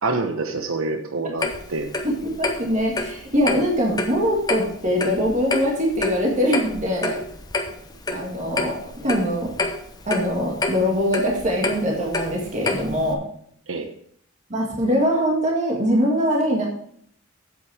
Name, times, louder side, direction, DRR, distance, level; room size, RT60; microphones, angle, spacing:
voice 1, 0.0-1.9 13.7-13.9, right 3 dB, 75° right, 5 dB, 1.0 m, -26 dB
Clock, 1.4-13.1, left 2 dB, 20° left, 0.9 m, -29 dB
voice 2, 2.0-7.2 8.1-9.5 10.1-13.2 14.5-16.7, equal, 35° right, -2 dB, 1.9 m, -22 dB
8.5 x 8.2 x 4.7 m, 0.64 s
head